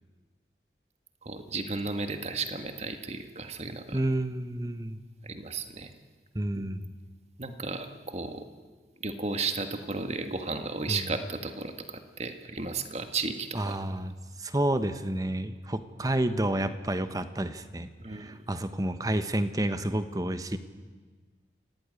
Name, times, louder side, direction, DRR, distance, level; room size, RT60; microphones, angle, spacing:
voice 1, 1.2-4.0 5.2-5.9 6.5-6.6 7.4-8.5 9.0-13.8 18.0-18.4, right 3 dB, 40° right, 7 dB, 1.8 m, -34 dB
voice 2, 3.9-5.0 6.3-6.9 10.9-11.0 13.5-14.1 14.4-20.6, right 1 dB, 20° right, 11 dB, 1.2 m, -30 dB
25.5 x 17.0 x 9.8 m, 1.4 s
head